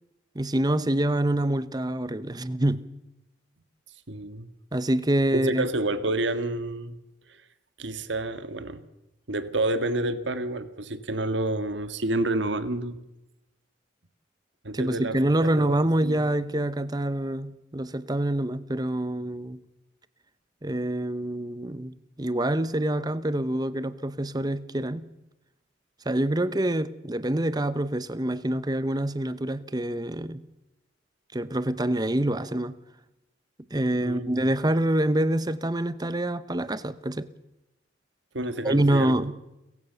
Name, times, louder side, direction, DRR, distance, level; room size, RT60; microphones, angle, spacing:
voice 1, 0.3-2.8 4.7-5.7 14.7-19.6 20.6-25.1 26.0-30.4 31.3-32.8 33.7-37.3 38.6-39.4, right 1 dB, 20° right, 0.9 m, -26 dB
voice 2, 4.1-4.5 5.3-7.0 7.8-8.8 9.3-13.0 14.6-15.2 15.6-15.8 16.0-16.2 34.0-34.3 38.3-39.2, right 2 dB, 70° right, 1.7 m, -29 dB
30.0 x 16.0 x 6.9 m
head